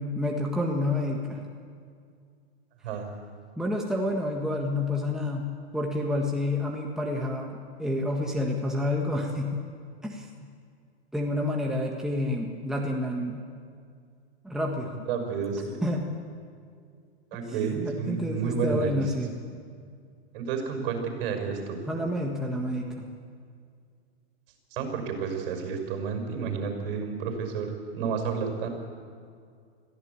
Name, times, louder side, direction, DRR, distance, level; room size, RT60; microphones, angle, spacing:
voice 1, 0.0-1.4 3.6-9.6 10.0-10.3 11.1-13.4 14.4-14.9 15.8-16.0 17.6-19.3 21.9-23.1, left 1 dB, ahead, -1 dB, 1.6 m, -29 dB
voice 2, 15.1-15.8 17.3-19.0 20.3-21.8 24.7-28.7, right 5 dB, 55° right, 5 dB, 5.8 m, -31 dB
22.5 x 15.0 x 8.3 m, 2.2 s
hypercardioid pair, 140°, 33 cm